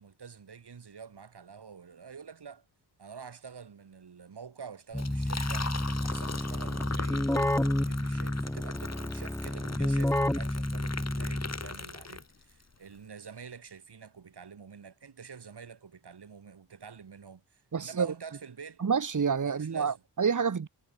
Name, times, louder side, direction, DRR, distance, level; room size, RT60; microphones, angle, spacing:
voice 1, 0.0-2.6 3.0-18.8 19.4-20.0, right 6 dB, 60° right, 4.2 m, -47 dB
Liquid, 4.9-12.6, left 4 dB, 35° left, 3.6 m, -40 dB
Keyboard (musical), 4.9-11.8, left 1 dB, 5° left, 0.9 m, -30 dB
voice 2, 17.7-18.1 18.8-20.7, right 6 dB, 45° right, 1.5 m, -28 dB
cardioid pair, 60°, 44 cm